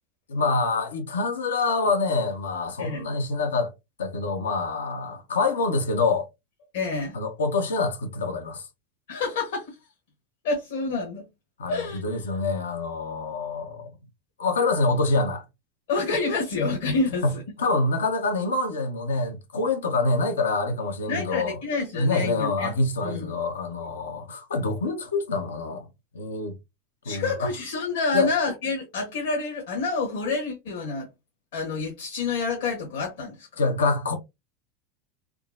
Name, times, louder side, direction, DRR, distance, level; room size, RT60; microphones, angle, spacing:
voice 1, 0.3-3.7 4.0-6.3 7.1-8.7 11.6-13.9 14.4-15.4 17.2-17.3 17.6-21.6 21.9-25.8 26.1-26.5 27.1-27.5 28.1-28.3 33.6-34.1, left 3 dB, 90° left, 0.7 m, -26 dB
voice 2, 6.7-7.2 9.1-9.7 10.4-11.2 11.7-12.2 15.9-17.4 21.1-22.7 23.0-23.4 27.0-31.1 31.5-33.6, left 3 dB, 75° left, 1.1 m, -28 dB
3.6 x 2.0 x 2.4 m
hypercardioid pair, 95°, 0 cm